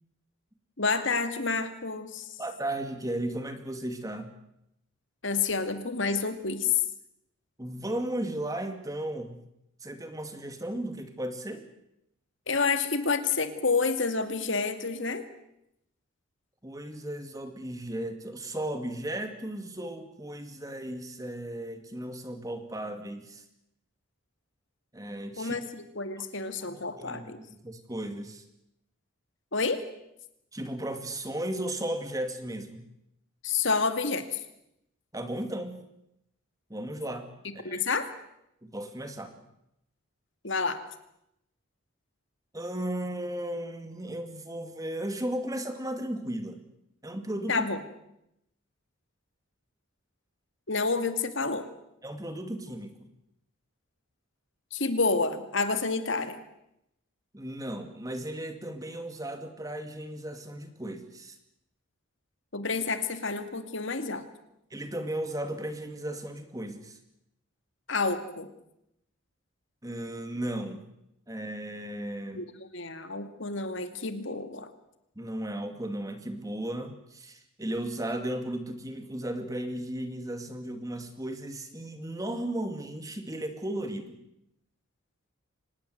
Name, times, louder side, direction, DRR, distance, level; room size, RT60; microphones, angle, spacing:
voice 1, 0.8-2.3 5.2-6.8 12.5-15.2 25.4-25.6 26.0-27.4 29.5-29.8 33.4-34.4 37.6-38.1 40.4-40.8 47.5-47.8 50.7-51.6 54.7-56.4 62.5-64.3 67.9-68.5 72.3-74.7, left 4 dB, 60° left, 9 dB, 2.3 m, -29 dB
voice 2, 2.4-4.3 7.6-9.4 9.8-11.6 16.6-23.4 24.9-25.6 26.7-28.4 30.5-32.8 35.1-35.8 36.7-37.8 38.6-39.4 42.5-46.6 47.0-47.7 52.0-52.9 57.3-61.4 64.7-67.0 69.8-70.8 71.3-72.4 75.2-84.2, right 1 dB, 15° right, 7 dB, 2.3 m, -35 dB
25.0 x 20.0 x 7.9 m, 0.82 s
head